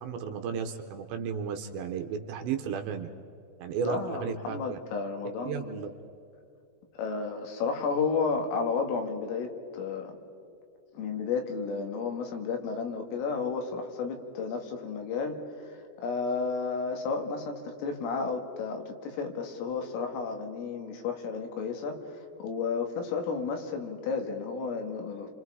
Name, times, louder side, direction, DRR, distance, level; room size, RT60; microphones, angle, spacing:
voice 1, 0.0-3.1 3.6-4.8 5.5-5.9, right 7 dB, 75° right, 6 dB, 2.8 m, -34 dB
voice 2, 3.8-5.9 7.0-10.2 10.9-15.7 16.0-25.3, left 5 dB, 85° left, 4 dB, 4.6 m, -32 dB
29.5 x 25.5 x 4.8 m, 2.7 s
omnidirectional pair, 5.8 m